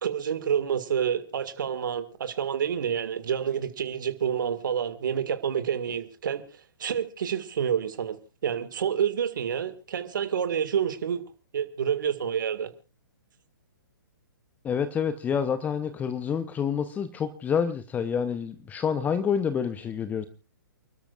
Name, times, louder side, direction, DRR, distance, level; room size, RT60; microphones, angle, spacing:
voice 1, 0.0-6.4 6.8-8.2 8.4-11.2 11.5-12.7, right 8 dB, 60° right, 2.0 m, -28 dB
voice 2, 14.6-20.3, left 7 dB, 15° left, 0.8 m, -28 dB
29.5 x 13.0 x 2.5 m
figure-of-eight pair, 130°, 12 cm